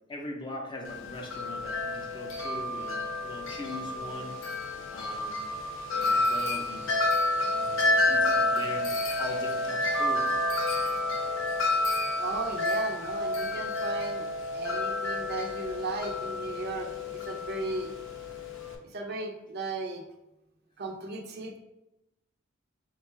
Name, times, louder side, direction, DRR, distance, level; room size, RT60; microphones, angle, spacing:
voice 1, 0.1-4.4 4.9-5.4 6.0-6.9 7.5-10.3, left 2 dB, 25° left, 0 dB, 0.5 m, -41 dB
Wind chime, 0.9-18.8, left 2 dB, 75° left, 0.6 m, -30 dB
voice 2, 12.2-14.3 14.5-17.9 18.9-20.0 20.8-21.6, right 2 dB, 50° right, 3 dB, 0.4 m, -36 dB
3.6 x 2.2 x 4.3 m, 0.94 s
head